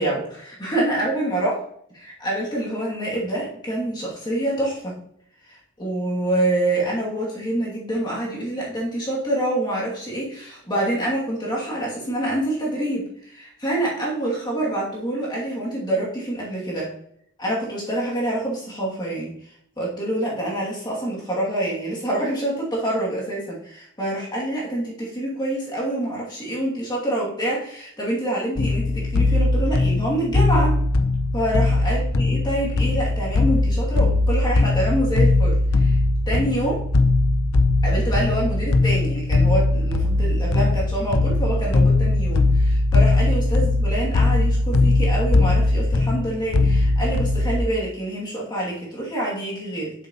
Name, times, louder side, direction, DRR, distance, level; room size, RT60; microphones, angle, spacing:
voice 1, 0.0-1.6 1.9-5.0 5.5-16.9 17.4-30.8 31.3-36.0 36.3-36.8 37.8-49.9, right 1 dB, 20° left, -5 dB, 2.3 m, -26 dB
sound 1, 28.6-47.6, left 2 dB, 75° left, 0.7 m, -20 dB
8.0 x 7.2 x 2.9 m, 0.69 s
head